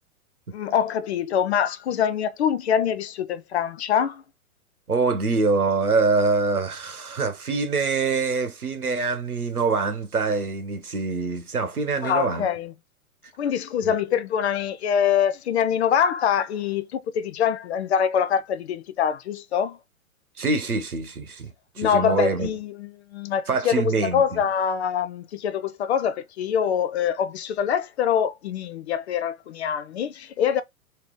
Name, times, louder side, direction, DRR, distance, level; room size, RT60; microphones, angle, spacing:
voice 1, 0.5-4.2 12.0-12.7 13.4-19.8 21.8-30.6, left 8 dB, 50° left, 0.5 m, -24 dB
voice 2, 4.9-12.5 13.8-14.0 20.4-22.5 23.5-24.4, right 4 dB, 90° right, 1.0 m, -25 dB
3.1 x 2.8 x 3.6 m
figure-of-eight pair, 110°, 43 cm